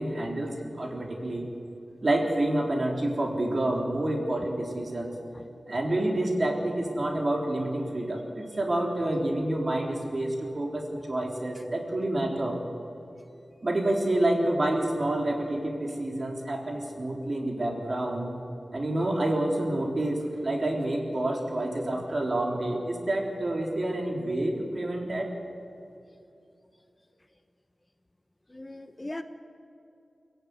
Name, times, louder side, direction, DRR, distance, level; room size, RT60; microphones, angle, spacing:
voice 1, 0.0-1.5 2.0-5.1 5.7-12.6 13.6-18.4 18.7-25.3, right 1 dB, 50° right, 1 dB, 3.9 m, -28 dB
voice 2, 28.5-29.2, left 1 dB, 25° left, 8 dB, 1.1 m, -39 dB
23.5 x 14.5 x 9.7 m, 2.7 s
wide cardioid pair, 60°, 0 cm